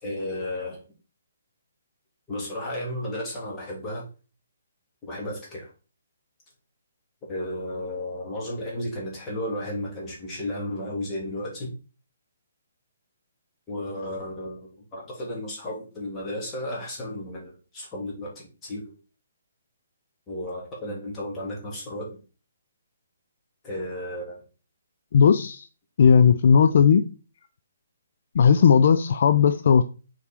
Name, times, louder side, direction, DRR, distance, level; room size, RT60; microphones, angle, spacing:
voice 1, 0.0-0.8 2.3-4.0 5.0-5.7 7.3-11.7 13.7-18.9 20.3-22.2 23.6-24.4, left 1 dB, 15° left, 2.9 m, -33 dB
voice 2, 25.1-25.7 26.0-27.0 28.3-29.8, left 6 dB, 50° left, 0.5 m, -17 dB
6.6 x 4.5 x 4.5 m
figure-of-eight pair, 130°, 0 cm